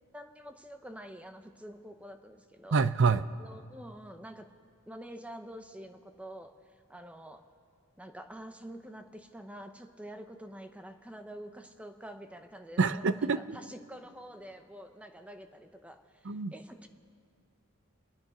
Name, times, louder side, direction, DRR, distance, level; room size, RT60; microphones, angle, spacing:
voice 1, 0.1-2.8 3.4-4.5 4.9-6.5 6.9-7.4 8.0-16.9, equal, 5° right, 7 dB, 0.8 m, -47 dB
voice 2, 2.7-3.2 12.8-13.6 16.3-16.5, right 4 dB, 60° right, 14 dB, 0.5 m, -26 dB
28.5 x 9.7 x 5.0 m, 2.2 s
head